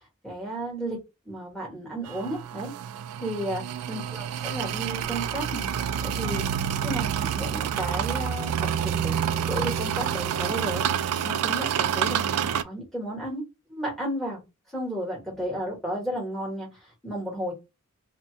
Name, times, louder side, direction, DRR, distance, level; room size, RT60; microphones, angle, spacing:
voice 1, 0.2-2.7 3.2-5.7 6.0-6.4 6.8-13.4 13.7-14.4 14.7-16.7 17.0-17.5, right 1 dB, ahead, 1.4 m, -33 dB
sound 1, 2.0-12.6, right 9 dB, 90° right, 0.3 m, -28 dB
2.8 x 2.7 x 3.2 m
head